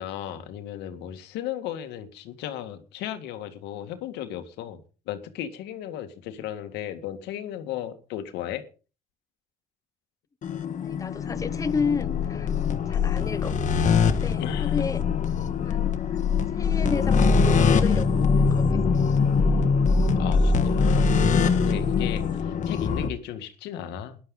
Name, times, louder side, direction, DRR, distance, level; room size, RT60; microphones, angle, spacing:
voice 1, 0.0-8.6 14.4-14.8 20.2-24.2, left 11 dB, 90° left, 2.0 m, -35 dB
sound 1, 10.4-23.1, left 5 dB, 45° left, 1.6 m, -23 dB
voice 2, 10.8-12.5 12.9-13.6 14.0-15.0 15.6-15.9 16.5-18.8, left 5 dB, 20° left, 0.9 m, -31 dB
18.0 x 11.5 x 3.9 m
cardioid pair, 110°, 17 cm